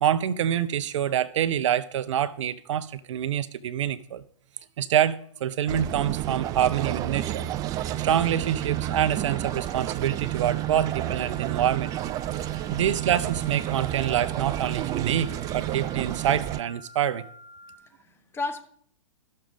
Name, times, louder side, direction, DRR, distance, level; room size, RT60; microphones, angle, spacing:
voice 1, 0.0-4.2 4.8-7.5 8.0-11.9 12.7-15.3 15.5-17.2, right 10 dB, 60° right, 0.6 m, -26 dB
sound 1, 5.7-16.6, right 13 dB, 20° right, 0.3 m, -30 dB
sound 2, 7.8-17.7, left 1 dB, 50° left, 3.0 m, -49 dB
voice 2, 12.3-12.8 17.8-18.6, left 3 dB, 15° left, 0.9 m, -36 dB
14.0 x 6.5 x 5.0 m
hypercardioid pair, 120°, 17 cm